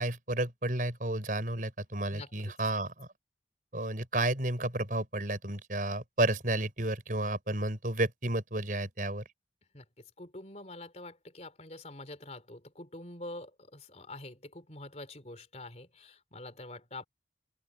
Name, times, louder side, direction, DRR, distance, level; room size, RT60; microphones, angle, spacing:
voice 1, 0.0-3.1 3.7-9.2, right 1 dB, 50° right, 6.4 m, -31 dB
voice 2, 2.1-2.5 9.7-9.8 10.2-17.0, left 2 dB, 40° left, 3.9 m, -46 dB
open air
head